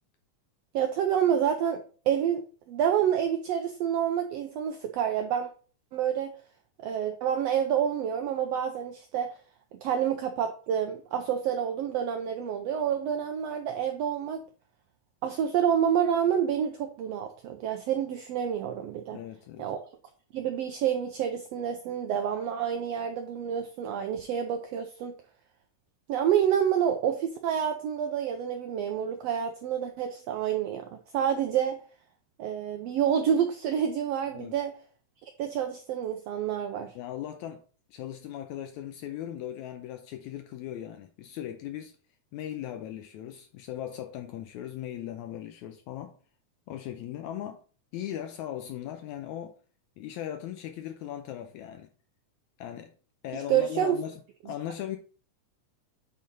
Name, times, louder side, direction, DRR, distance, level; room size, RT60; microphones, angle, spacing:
voice 1, 0.7-1.8 2.1-5.5 5.9-6.3 6.8-9.3 9.8-14.4 15.2-19.2 19.6-19.8 20.3-25.1 26.1-31.8 32.4-34.7 35.2-36.9 53.5-54.0, right 9 dB, 90° right, 1.4 m, -28 dB
voice 2, 19.1-19.7 34.3-34.6 37.0-37.6 37.9-42.0 42.3-46.2 46.7-47.6 47.9-49.6 50.0-51.9 52.6-53.0 53.2-55.0, left 11 dB, 80° left, 1.8 m, -38 dB
8.4 x 4.0 x 4.0 m
omnidirectional pair, 3.6 m